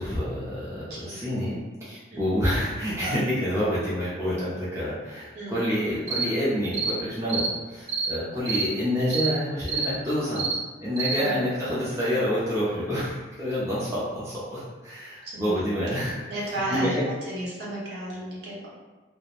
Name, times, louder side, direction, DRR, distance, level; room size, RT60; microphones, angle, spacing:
voice 1, 0.0-10.5 10.8-16.2 16.7-17.1, equal, 15° right, -10 dB, 0.4 m, -28 dB
sound 1, 6.1-6.3 6.7-7.0 7.3-7.5 7.9-8.1 8.5-8.7 9.1-9.3 9.7-9.9 10.4-10.6 11.0-11.2, right 4 dB, 85° right, 0.5 m, -27 dB
voice 2, 15.2-15.6 16.3-16.9 17.3-18.8, right 1 dB, 60° right, -7 dB, 0.8 m, -33 dB
2.4 x 2.0 x 2.9 m, 1.3 s
head